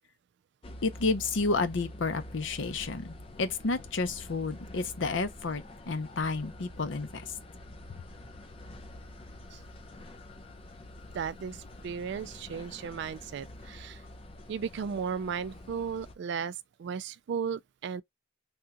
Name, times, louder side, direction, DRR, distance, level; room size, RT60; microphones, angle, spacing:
sound 1, 0.6-16.2, left 1 dB, 30° left, 0.7 m, -47 dB
voice 1, 0.8-7.2, left 3 dB, 80° left, 0.7 m, -31 dB
voice 2, 11.1-14.0 14.5-18.0, right 6 dB, 65° right, 0.3 m, -35 dB
3.6 x 2.3 x 2.8 m
head